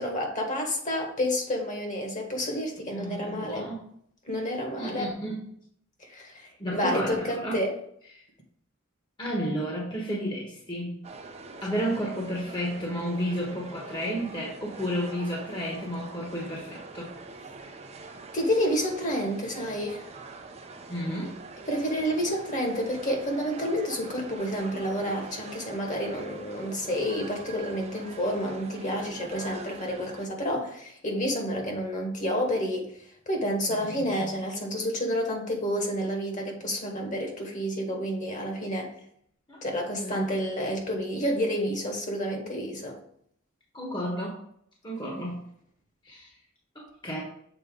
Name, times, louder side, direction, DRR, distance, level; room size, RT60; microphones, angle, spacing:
voice 1, 0.0-3.7 4.2-5.1 6.1-7.8 18.3-20.1 21.7-32.9 33.3-38.9 39.6-43.0, equal, 40° left, 1.7 m, -29 dB
voice 2, 2.9-3.9 4.8-5.5 6.6-7.6 8.1-8.2 9.2-11.0 11.6-17.1 20.9-21.4 33.7-34.3 39.5-39.6 40.0-40.3 43.7-44.4 44.8-45.4 46.0-46.3 46.7-47.2, equal, 25° left, 1.2 m, -32 dB
sound 1, 11.0-30.3, right 3 dB, 35° right, 0.6 m, -44 dB
7.1 x 3.9 x 3.8 m
head